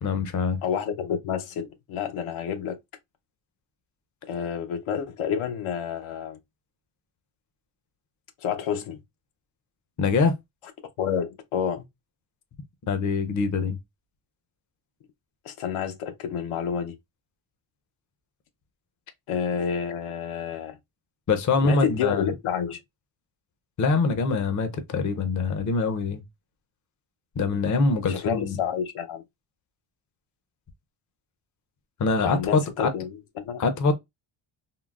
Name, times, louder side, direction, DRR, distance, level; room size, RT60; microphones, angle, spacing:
voice 1, 0.0-0.6 10.0-10.3 12.9-13.8 21.3-22.3 23.8-26.2 27.4-28.6 32.0-32.9 33.6-33.9, left 4 dB, 40° left, 0.6 m, -24 dB
voice 2, 0.6-2.8 4.3-6.4 8.4-9.0 11.0-11.9 15.4-16.9 19.3-20.8 21.6-22.8 28.0-29.2 32.2-33.6, left 8 dB, 80° left, 0.7 m, -29 dB
3.7 x 2.0 x 2.3 m
cardioid pair, 105°, 48 cm